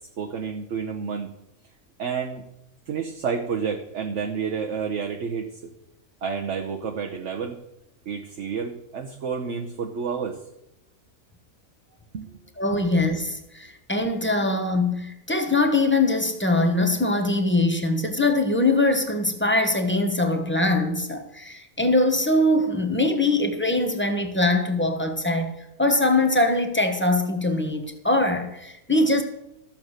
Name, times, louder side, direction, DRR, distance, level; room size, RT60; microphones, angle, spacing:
voice 1, 0.2-1.3 2.0-2.4 2.9-5.5 6.2-7.6 8.1-10.4 12.1-12.3 12.7-12.8, right 6 dB, 60° right, 1.2 m, -30 dB
voice 2, 12.6-25.5 25.8-29.2, left 2 dB, 10° left, 1.1 m, -22 dB
13.5 x 7.0 x 6.5 m
omnidirectional pair, 1.5 m